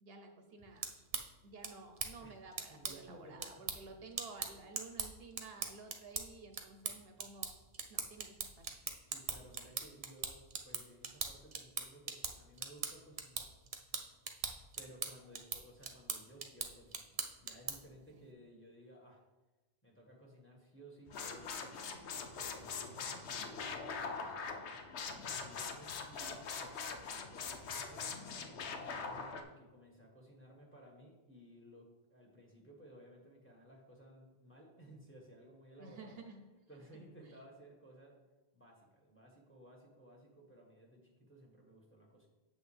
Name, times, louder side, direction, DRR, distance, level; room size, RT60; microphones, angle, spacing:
voice 1, 0.0-0.9 1.4-7.5 7.9-8.7 18.1-18.2 35.8-36.4, right 4 dB, 65° right, 5 dB, 0.9 m, -53 dB
sound 1, 0.6-18.0, right 5 dB, 40° right, 0.6 m, -43 dB
voice 2, 2.7-3.5 3.8-4.0 9.0-10.4 10.6-13.5 14.7-19.2 19.8-28.1 28.9-36.2 36.7-38.2 38.5-42.3, right 1 dB, 10° left, -1 dB, 1.5 m, -58 dB
sound 2, 21.1-29.4, left 5 dB, 90° left, 1.0 m, -42 dB
8.1 x 6.8 x 3.3 m, 1.1 s
omnidirectional pair, 1.1 m